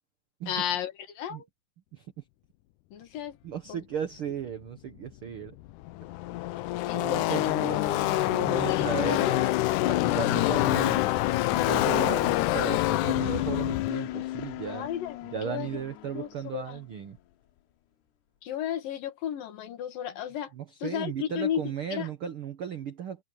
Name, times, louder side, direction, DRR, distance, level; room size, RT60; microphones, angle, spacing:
voice 1, 0.5-1.5 2.9-3.4 3.7-3.8 6.9-7.5 8.5-9.4 14.7-15.8 16.1-16.8 18.4-20.5 20.8-22.1, left 10 dB, 70° left, 3.2 m, -34 dB
voice 2, 3.4-5.5 6.9-9.5 9.8-11.0 11.5-14.9 15.3-17.2 20.6-23.2, right 7 dB, 80° right, 1.2 m, -35 dB
Car passing by / Race car auto racing, 5.1-5.2 5.4-15.9, left 17 dB, 85° left, 1.8 m, -27 dB
omnidirectional pair, 4.4 m